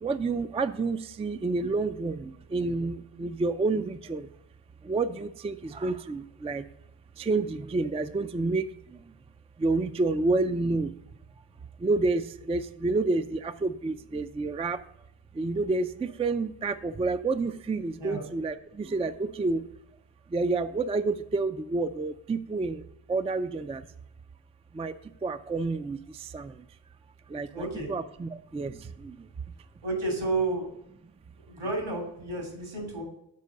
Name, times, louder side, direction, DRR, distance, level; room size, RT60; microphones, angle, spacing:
voice 1, 0.0-4.3 4.8-6.6 7.2-8.7 9.6-10.9 11.8-14.8 15.4-19.6 20.3-22.8 23.1-23.8 24.7-24.9 25.2-26.5 27.3-29.2, right 3 dB, 15° right, 11 dB, 0.4 m, -29 dB
voice 2, 27.5-27.9 29.8-30.7 31.4-33.0, right 2 dB, 75° right, 1 dB, 3.1 m, -31 dB
6.9 x 4.5 x 6.3 m, 0.81 s
supercardioid pair, 45°, 48 cm